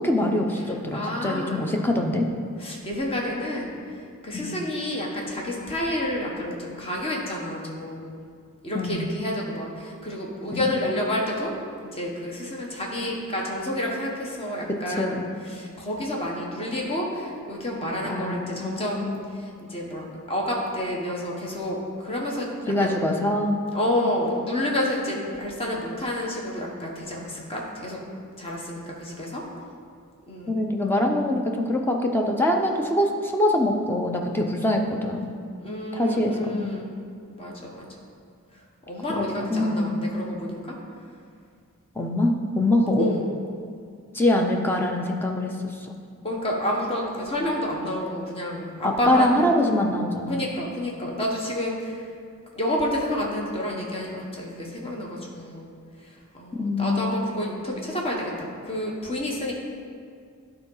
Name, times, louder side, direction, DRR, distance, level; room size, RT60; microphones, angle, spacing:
voice 1, 0.0-2.3 4.3-4.5 8.7-9.1 10.5-10.7 14.9-15.3 18.0-19.2 22.7-23.6 30.5-35.4 35.9-36.7 39.1-40.2 42.0-43.1 44.1-45.9 48.8-50.5 56.5-57.1, left 1 dB, 10° left, 2 dB, 0.6 m, -24 dB
voice 2, 0.9-1.7 2.6-3.7 4.2-8.1 8.6-11.5 11.8-22.5 22.8-22.9 23.7-28.0 28.4-29.4 30.3-30.6 35.6-36.9 37.3-37.9 38.9-40.7 43.0-43.3 46.2-49.3 49.7-49.8 50.3-52.1 52.5-55.7 56.0-59.5, left 1 dB, 25° left, -2 dB, 1.2 m, -29 dB
11.5 x 4.0 x 5.5 m, 2.2 s
head